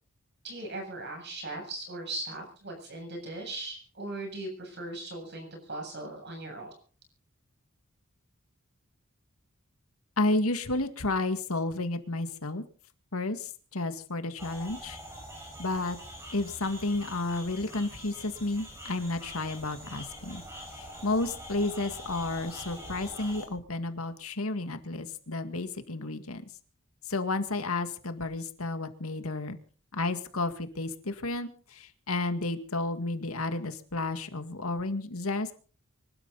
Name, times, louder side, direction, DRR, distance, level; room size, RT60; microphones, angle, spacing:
voice 1, 0.4-6.7, right 2 dB, 50° right, 3 dB, 7.8 m, -39 dB
voice 2, 10.2-12.6 13.1-15.0 15.6-16.0 16.3-20.4 20.7-26.5 27.1-29.6 29.9-35.5, left 2 dB, 85° left, 8 dB, 2.0 m, -32 dB
sound 1, 14.4-23.5, equal, 10° right, 5.7 m, -44 dB
25.5 x 12.5 x 4.1 m, 0.42 s
head